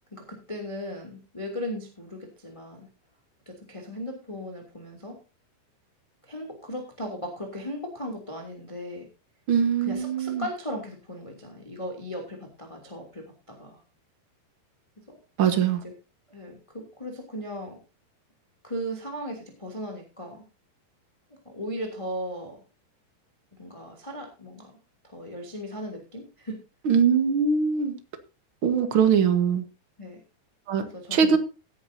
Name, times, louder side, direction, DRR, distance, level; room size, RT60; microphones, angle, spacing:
voice 1, 0.1-2.9 3.5-5.2 6.2-9.1 9.8-13.8 15.1-15.2 16.3-17.8 18.6-20.4 21.4-22.6 23.6-24.7 25.0-26.6 30.0-30.2 30.8-31.4, equal, 10° left, 2.2 m, -37 dB
voice 2, 9.5-10.4 15.4-15.8 26.8-27.9 28.6-29.6 30.7-30.8 31.1-31.4, right 6 dB, 70° right, 1.2 m, -22 dB
17.5 x 10.0 x 2.8 m
omnidirectional pair, 4.7 m